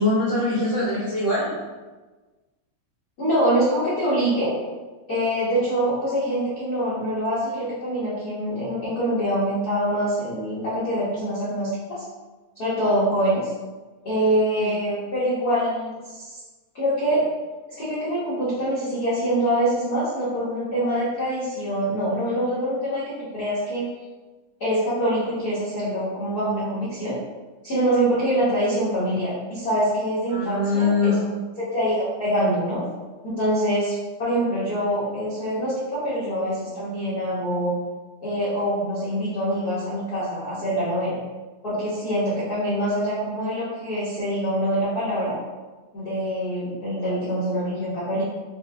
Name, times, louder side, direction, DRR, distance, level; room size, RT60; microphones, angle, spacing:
voice 1, 0.0-1.6 14.6-14.7 30.3-31.2, left 3 dB, 55° right, -10 dB, 0.8 m, -22 dB
voice 2, 3.2-4.5 5.1-11.7 12.5-13.5 14.0-16.4 16.7-17.2 17.8-23.0 23.3-23.8 24.6-27.2 27.6-31.3 31.6-32.8 33.2-33.9 34.2-37.7 38.2-41.2 41.6-45.3 45.9-48.2, equal, 70° left, -11 dB, 0.9 m, -24 dB
6.5 x 2.2 x 3.4 m, 1.2 s
omnidirectional pair, 3.7 m